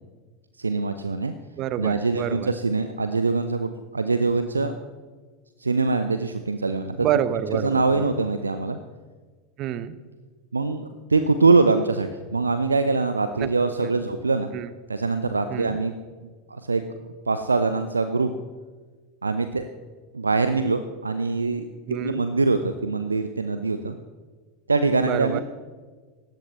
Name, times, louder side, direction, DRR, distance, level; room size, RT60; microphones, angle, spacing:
voice 1, 0.6-1.3 1.8-4.8 5.6-7.1 7.5-8.8 10.5-14.5 14.9-15.9 16.2-16.8 17.3-18.3 19.2-19.6 20.1-24.0 24.7-25.4, right 3 dB, 80° right, 9 dB, 0.7 m, -23 dB
voice 2, 1.6-2.5 7.0-8.1 9.6-10.0 13.4-13.5 13.8-13.9 14.5-14.7 15.5-15.8 21.9-22.2 25.0-25.4, right 11 dB, 40° right, 15 dB, 1.0 m, -28 dB
19.5 x 16.0 x 3.2 m, 1.4 s
figure-of-eight pair, 85°, 0 cm